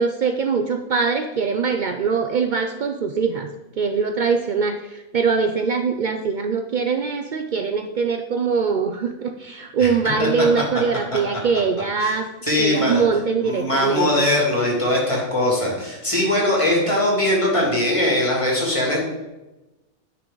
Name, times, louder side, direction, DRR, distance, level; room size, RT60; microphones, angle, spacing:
voice 1, 0.0-3.5 3.8-12.3 12.6-14.1, right 5 dB, 80° right, 6 dB, 0.4 m, -22 dB
voice 2, 12.4-13.0 13.4-19.0, left 1 dB, 20° left, -3 dB, 2.6 m, -21 dB
10.0 x 5.8 x 3.9 m, 1.0 s
omnidirectional pair, 1.5 m